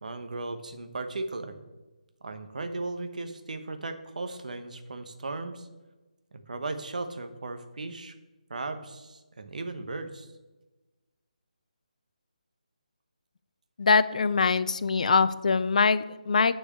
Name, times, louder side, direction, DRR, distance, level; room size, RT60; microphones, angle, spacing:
voice 1, 0.0-1.6 2.2-5.7 6.3-8.1 8.5-10.3, right 3 dB, 65° right, 8 dB, 1.0 m, -36 dB
voice 2, 13.8-16.5, left 4 dB, 60° left, 15 dB, 0.4 m, -23 dB
7.2 x 4.7 x 6.8 m, 1.1 s
figure-of-eight pair, 160°, 4 cm